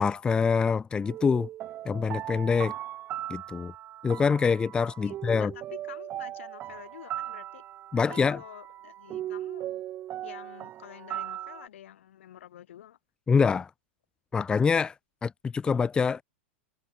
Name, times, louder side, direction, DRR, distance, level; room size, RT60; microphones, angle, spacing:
voice 1, 0.0-1.5 1.8-2.7 3.3-3.7 4.0-5.5 7.9-8.4 13.3-13.7 14.3-14.9 15.2-16.2, left 5 dB, 15° left, 0.9 m, -25 dB
sound 1, 1.0-11.7, right 12 dB, 30° right, 1.2 m, -38 dB
voice 2, 5.0-7.6 7.9-9.7 10.2-13.0, left 11 dB, 80° left, 5.9 m, -48 dB
hypercardioid pair, 140°, 7 cm